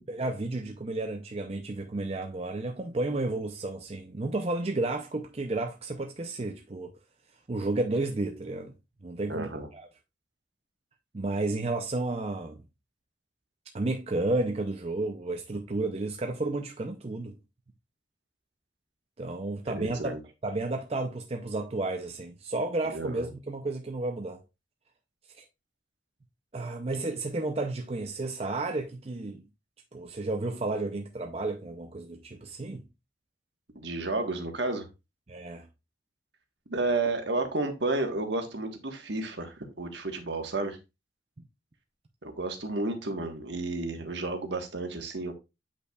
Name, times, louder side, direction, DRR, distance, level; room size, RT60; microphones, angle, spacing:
voice 1, 0.1-6.9 7.5-8.7 9.0-9.9 11.1-12.6 13.7-17.4 19.2-24.4 25.4-25.5 26.5-29.4 29.9-32.8 35.3-35.7, right 2 dB, 35° right, 0.5 m, -32 dB
voice 2, 9.3-9.7 19.7-20.2 22.9-23.3 33.7-34.9 36.7-40.8 42.2-45.3, right 2 dB, 70° right, 1.4 m, -32 dB
8.5 x 5.4 x 2.3 m
head